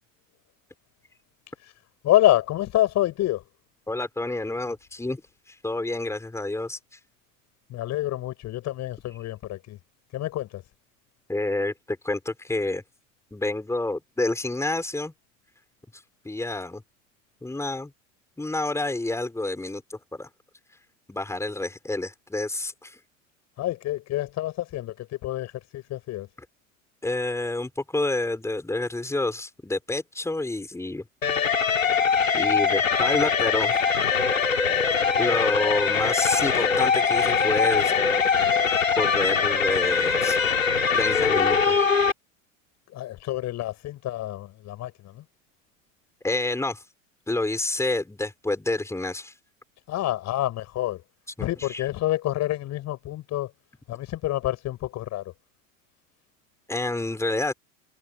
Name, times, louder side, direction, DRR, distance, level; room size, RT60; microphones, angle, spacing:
voice 1, 2.0-3.4 7.7-9.8 10.1-10.6 23.6-26.3 42.9-45.2 49.9-51.0 51.4-53.5 53.9-55.3, left 14 dB, 45° left, 8.0 m, -27 dB
voice 2, 3.9-5.2 5.5-7.0 11.3-12.8 13.3-15.1 16.2-16.8 17.4-17.9 18.4-20.3 21.1-23.0 27.0-31.0 32.3-33.7 35.2-37.9 39.0-40.4 40.9-41.7 46.2-46.8 47.3-49.3 51.4-51.8 56.7-57.5, left 2 dB, 5° left, 6.0 m, -28 dB
sound 1, 31.2-42.1, left 6 dB, 85° left, 3.6 m, -22 dB
hypercardioid pair, 85°, 39 cm